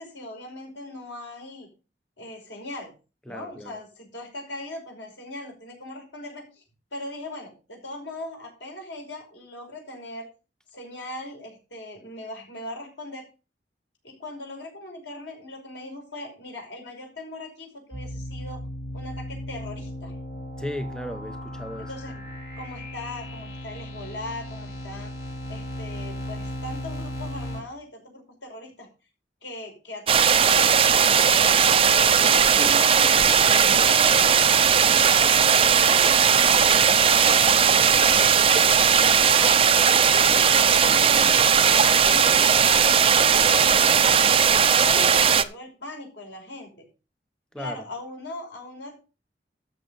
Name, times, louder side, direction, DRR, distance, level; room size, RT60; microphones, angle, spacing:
voice 1, 0.0-1.7 2.2-2.9 3.3-6.6 6.9-10.3 10.7-13.2 14.0-18.6 18.9-20.2 21.8-22.1 22.6-25.1 25.5-28.9 29.4-30.8 31.2-33.4 33.7-36.4 36.9-38.4 38.7-40.0 40.4-42.8 43.1-44.1 44.4-46.8 47.6-49.0, left 2 dB, 90° left, 5.5 m, -39 dB
voice 2, 3.3-3.8 20.6-21.9 47.5-47.8, left 1 dB, 5° left, 0.8 m, -35 dB
sound 1, 17.9-27.6, left 1 dB, 55° left, 3.7 m, -36 dB
sound 2, 30.1-45.4, right 7 dB, 30° right, 0.6 m, -18 dB
13.0 x 6.7 x 5.3 m
head